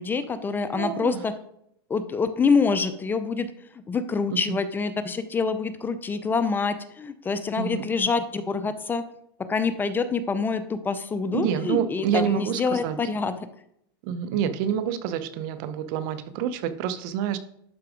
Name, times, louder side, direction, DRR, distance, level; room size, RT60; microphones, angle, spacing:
voice 1, 0.0-1.3 1.9-3.5 3.9-9.0 9.5-13.3, left 5 dB, 15° left, 11 dB, 0.6 m, -26 dB
voice 2, 0.7-1.2 4.5-4.6 7.6-7.9 11.3-13.0 14.0-17.4, right 9 dB, 55° right, 13 dB, 0.9 m, -27 dB
11.5 x 4.8 x 5.0 m, 0.74 s
supercardioid pair, 130°, 13 cm